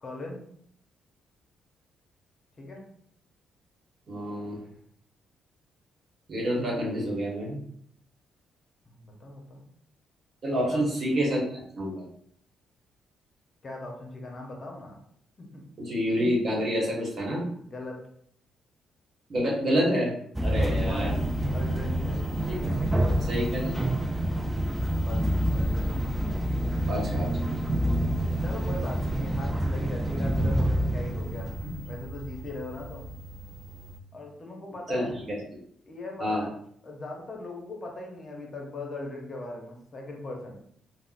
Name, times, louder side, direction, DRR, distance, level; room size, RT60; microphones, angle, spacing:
voice 1, 0.0-0.4 2.6-2.8 8.9-9.6 10.5-10.9 13.6-15.0 15.4-15.6 17.6-18.0 20.5-21.2 21.5-22.2 22.6-23.4 24.9-25.9 28.4-31.5 31.9-33.1 34.1-35.2 35.8-36.5 36.8-40.6, left 2 dB, 35° left, 0 dB, 0.7 m, -39 dB
voice 2, 4.1-4.6 6.3-7.6 10.4-11.4 11.7-12.0 15.8-17.5 19.3-20.1 20.4-21.2 22.5-22.6 23.3-23.8 26.9-27.3 34.9-35.0 36.2-36.4, equal, 45° right, -3 dB, 1.1 m, -27 dB
sound 1, 20.4-34.0, right 1 dB, 10° right, 0.3 m, -28 dB
3.6 x 2.0 x 2.5 m, 0.67 s
cardioid pair, 90°, 0 cm